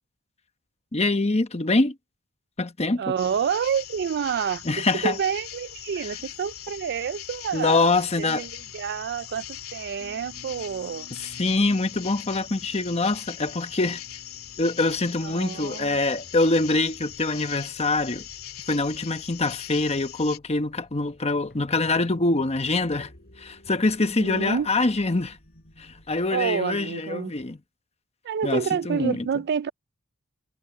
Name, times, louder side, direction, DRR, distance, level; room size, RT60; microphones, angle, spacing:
voice 1, 0.9-1.9 2.6-3.0 4.6-5.2 7.5-8.5 11.1-14.0 14.6-18.2 18.7-23.1 23.4-25.4 25.8-27.6 28.4-29.3, left 2 dB, 30° left, 1.1 m, -24 dB
voice 2, 3.0-9.4 9.7-11.1 15.2-16.0 24.2-24.7 26.3-27.3 28.2-29.7, right 7 dB, 50° right, 0.4 m, -28 dB
sound 1, 3.2-20.4, left 11 dB, 90° left, 2.3 m, -41 dB
sound 2, 10.0-26.3, equal, 45° left, 5.9 m, -54 dB
head